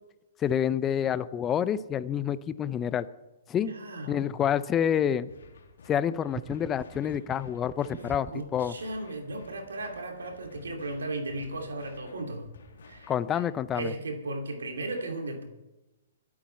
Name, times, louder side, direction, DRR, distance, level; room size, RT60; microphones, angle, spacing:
voice 1, 0.4-3.1 3.5-3.7 4.1-5.3 5.9-8.7 13.1-13.9, left 9 dB, 20° left, 15 dB, 0.6 m, -28 dB
voice 2, 3.6-4.4 7.0-7.2 7.9-12.5 12.8-13.4 13.7-15.5, right 2 dB, 80° right, 4 dB, 2.7 m, -36 dB
sound 1, 5.3-13.3, left 3 dB, 75° left, 3.1 m, -53 dB
sound 2, 6.3-8.5, right 7 dB, 15° right, 0.3 m, -42 dB
22.0 x 8.7 x 4.5 m, 1.0 s
hypercardioid pair, 125°, 0 cm